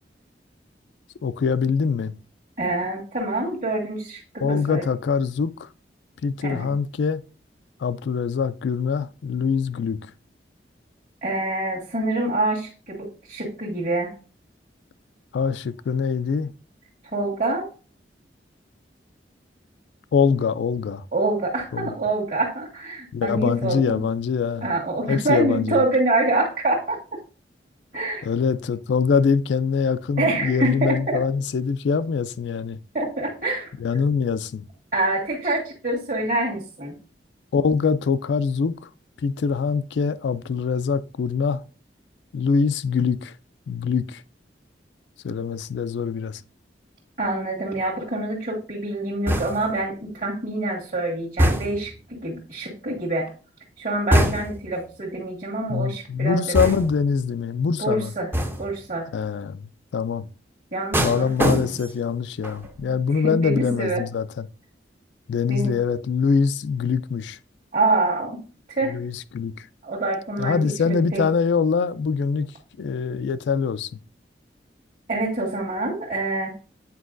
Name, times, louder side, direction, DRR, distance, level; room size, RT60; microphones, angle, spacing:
voice 1, 1.2-2.2 4.4-5.7 6.2-7.2 7.8-10.0 15.3-16.5 20.1-21.1 21.7-21.9 23.1-24.7 25.1-25.8 28.2-32.8 33.8-34.7 37.5-38.9 39.2-41.6 42.3-43.4 43.7-44.2 45.2-46.4 54.2-54.3 55.7-58.1 59.1-60.3 61.0-64.5 65.3-67.4 68.9-69.7 70.4-72.5 72.8-74.0, left 5 dB, 75° left, 0.3 m, -24 dB
voice 2, 2.6-4.8 6.4-6.7 11.2-14.1 17.1-17.7 21.1-24.0 24.6-27.0 27.9-28.2 30.2-31.2 32.9-33.7 34.9-36.9 47.2-53.3 53.8-56.8 57.8-58.3 58.6-59.1 60.7-61.3 62.8-62.9 63.2-64.0 65.5-65.7 67.7-68.4 68.7-69.0 69.8-71.3 75.1-76.5, right 2 dB, 50° right, 1.5 m, -26 dB
sound 1, 49.3-49.8 51.4-52.0 54.1-54.7 56.5-57.1 58.3-58.8 60.9-62.1 62.4-62.8, equal, 15° right, 0.5 m, -23 dB
8.2 x 4.6 x 2.5 m
head